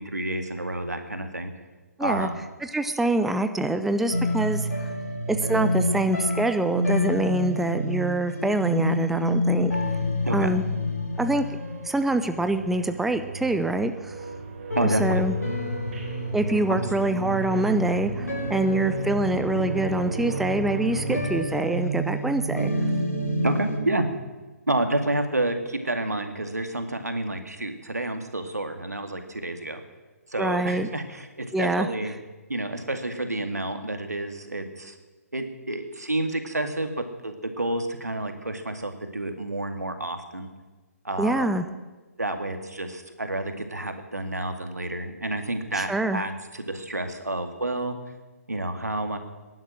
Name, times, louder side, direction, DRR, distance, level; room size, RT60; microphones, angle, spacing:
voice 1, 0.0-1.5 2.0-2.4 10.2-10.5 14.8-15.2 16.7-16.8 21.1-21.2 23.4-24.1 24.7-29.8 30.3-32.1 32.5-34.9 35.3-40.5 41.0-41.5 42.2-48.0 48.5-49.2, right 1 dB, 85° right, 6 dB, 2.1 m, -29 dB
voice 2, 2.6-4.7 5.3-9.7 10.3-10.7 11.2-11.5 11.8-14.1 14.8-15.3 16.3-22.7 30.4-30.9 31.5-31.9 41.2-41.7 45.7-46.2, right 2 dB, 5° right, 9 dB, 0.6 m, -25 dB
sound 1, 4.1-14.3 14.7-23.8, left 1 dB, 80° left, 5.0 m, -29 dB
sound 2, 11.2-21.3, right 4 dB, 45° right, 3.7 m, -36 dB
20.0 x 11.0 x 6.4 m, 1.2 s
figure-of-eight pair, 135°, 9 cm